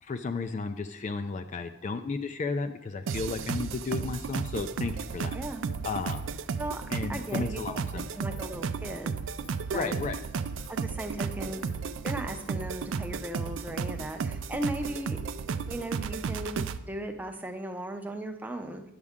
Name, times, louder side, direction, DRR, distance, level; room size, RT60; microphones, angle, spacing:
voice 1, 0.0-5.3 5.8-6.2 6.9-8.1 9.7-10.2, left 4 dB, 35° left, 7 dB, 0.3 m, -33 dB
sound 1, 3.1-16.8, right 5 dB, 65° right, 0.4 m, -34 dB
voice 2, 5.3-5.7 6.6-6.8 7.1-7.8 8.1-9.2 9.7-10.0 10.7-11.6 12.0-15.2 15.7-18.8, right 1 dB, 10° right, 4 dB, 0.6 m, -37 dB
Insect, 5.4-5.7 6.0-6.2 6.6-6.7 7.0-7.4 7.8-8.0 8.3-8.5 8.8-9.0 9.4-9.5 9.8-10.1 10.5-11.1 11.4-12.7, left 4 dB, 85° left, 3.7 m, -56 dB
9.6 x 7.2 x 3.6 m, 0.90 s
head